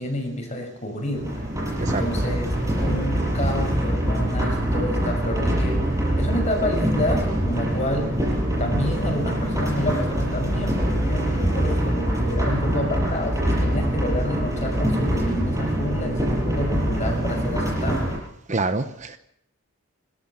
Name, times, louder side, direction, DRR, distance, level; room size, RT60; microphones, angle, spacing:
voice 1, 0.0-1.4 1.8-8.3 8.6-18.1, left 1 dB, 35° left, 3 dB, 6.1 m, -29 dB
sound 1, 1.1-18.2, right 1 dB, 15° right, 6.6 m, -24 dB
voice 2, 18.5-19.2, right 3 dB, 35° right, 10 dB, 1.0 m, -26 dB
27.5 x 13.5 x 7.2 m, 0.73 s
head